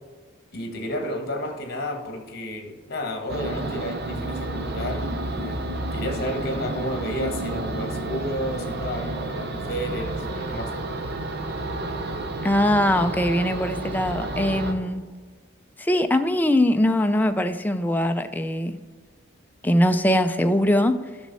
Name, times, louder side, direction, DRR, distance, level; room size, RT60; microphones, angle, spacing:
voice 1, 0.5-10.7, equal, 55° left, 5 dB, 1.4 m, -32 dB
sound 1, 3.3-14.7, right 1 dB, 55° right, 0.9 m, -30 dB
voice 2, 12.4-15.1 15.8-18.8 19.6-21.0, left 1 dB, 10° left, 8 dB, 0.4 m, -21 dB
11.5 x 6.3 x 4.1 m, 1.5 s
head